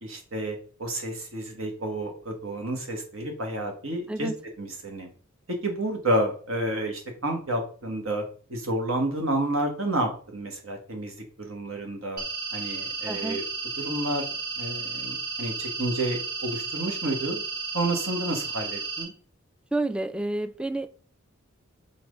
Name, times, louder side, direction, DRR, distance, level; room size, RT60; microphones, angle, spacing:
voice 1, 0.0-4.3 4.6-5.1 5.6-8.2 8.5-12.2 12.5-13.4 13.8-14.3 14.6-17.4 17.7-19.1, right 1 dB, 75° right, 1.8 m, -30 dB
sound 1, 12.2-19.0, right 4 dB, 45° right, 3.1 m, -33 dB
voice 2, 13.1-13.4 19.7-20.9, right 2 dB, 5° right, 0.3 m, -29 dB
6.0 x 4.1 x 5.3 m
head